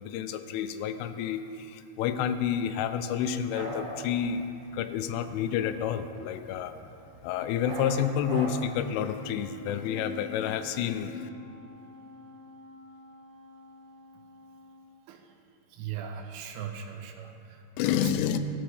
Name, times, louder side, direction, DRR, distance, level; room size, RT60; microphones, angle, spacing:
voice 1, 0.0-4.4 4.7-6.7 7.2-11.3 17.8-18.4, left 8 dB, 85° left, 10 dB, 3.0 m, -29 dB
sound 1, 3.3-7.3 7.6-8.5, right 2 dB, 65° right, 1.4 m, -42 dB
Wind instrument woodwind instrument, 8.8-15.0, left 4 dB, 70° left, 3.9 m, -51 dB
voice 2, 15.7-17.7 18.0-18.1, right 8 dB, 85° right, 4 dB, 3.3 m, -39 dB
16.0 x 8.0 x 3.2 m, 2.5 s
omnidirectional pair, 5.6 m